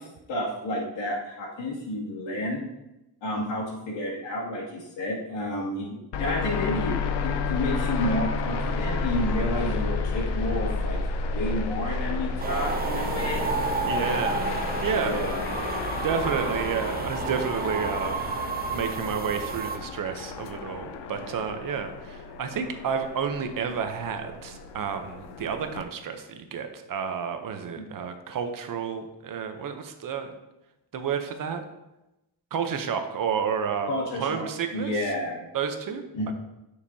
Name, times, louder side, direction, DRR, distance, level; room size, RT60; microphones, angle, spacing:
voice 1, 0.0-2.6 3.2-11.0 11.3-13.5 14.9-15.4 27.8-27.9 33.8-34.5 34.7-35.4 36.1-36.3, left 1 dB, 85° left, -4 dB, 2.5 m, -30 dB
sound 1, 6.1-25.8, left 4 dB, 65° left, 0.7 m, -31 dB
sound 2, 12.4-19.8, right 4 dB, 25° right, 0.4 m, -31 dB
voice 2, 13.9-14.5 14.8-15.2 16.0-18.4 18.7-30.3 30.9-31.6 32.5-33.9 34.2-34.9 35.5-36.3, right 6 dB, 50° right, 6 dB, 0.8 m, -30 dB
10.0 x 6.6 x 2.8 m, 0.95 s
wide cardioid pair, 175°, 43 cm